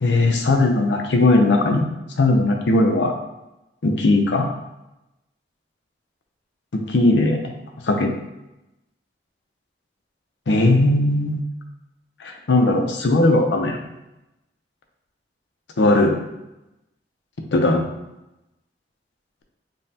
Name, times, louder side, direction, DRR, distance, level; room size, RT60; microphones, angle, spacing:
voice 1, 0.0-1.9 2.2-3.1 3.8-4.5 6.9-7.5 7.8-8.1 10.5-11.4 12.2-13.8 15.8-16.1 17.5-17.8, left 2 dB, 85° left, 3 dB, 0.6 m, -18 dB
5.3 x 2.1 x 2.7 m, 0.94 s
head